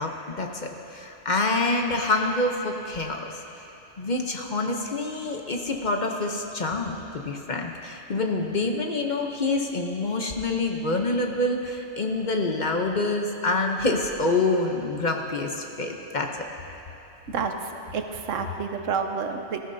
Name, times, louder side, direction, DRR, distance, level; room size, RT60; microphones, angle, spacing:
voice 1, 0.0-3.2 4.0-16.3, left 2 dB, 45° left, 2 dB, 0.8 m, -26 dB
voice 2, 17.3-19.6, right 5 dB, 90° right, 5 dB, 1.2 m, -29 dB
19.5 x 14.0 x 2.7 m, 2.9 s
omnidirectional pair, 1.3 m